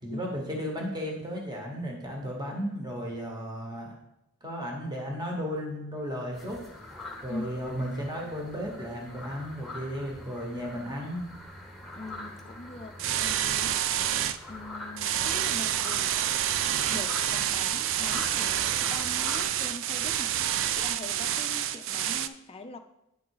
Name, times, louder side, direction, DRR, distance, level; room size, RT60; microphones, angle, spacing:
voice 1, 0.0-3.9 4.4-6.6 7.2-11.2, equal, 20° right, 0 dB, 1.2 m, -34 dB
sound 1, 6.3-19.4, left 2 dB, ahead, 1.2 m, -44 dB
voice 2, 11.9-13.8 14.5-16.1 16.9-20.4 20.7-22.8, left 2 dB, 25° left, 6 dB, 0.5 m, -42 dB
sound 2, 13.0-14.4 15.0-22.3, right 11 dB, 60° right, 0.3 m, -28 dB
9.6 x 3.8 x 4.7 m, 0.85 s
head